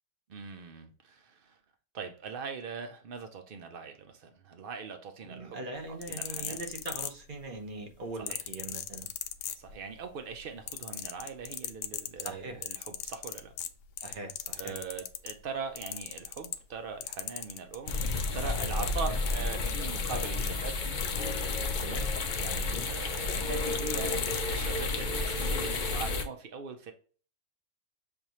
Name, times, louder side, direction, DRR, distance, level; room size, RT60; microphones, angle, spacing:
voice 1, 0.3-1.6 1.9-5.6 5.9-6.6 8.2-8.4 9.6-13.5 14.6-20.8 22.4-26.9, right 5 dB, 80° right, 0.4 m, -41 dB
voice 2, 5.2-9.1 12.2-12.6 14.0-14.7 19.1-19.2 21.6-22.1 22.4-22.9, right 2 dB, 40° right, 0.8 m, -41 dB
sound 1, 5.8-7.6 8.3-10.0 10.3-15.4 15.8-16.8 17.0-24.4 25.2-25.3, left 11 dB, 80° left, 1.2 m, -38 dB
sound 2, 17.9-26.2, left 3 dB, 60° left, 0.4 m, -31 dB
6.8 x 2.6 x 2.9 m
omnidirectional pair, 1.8 m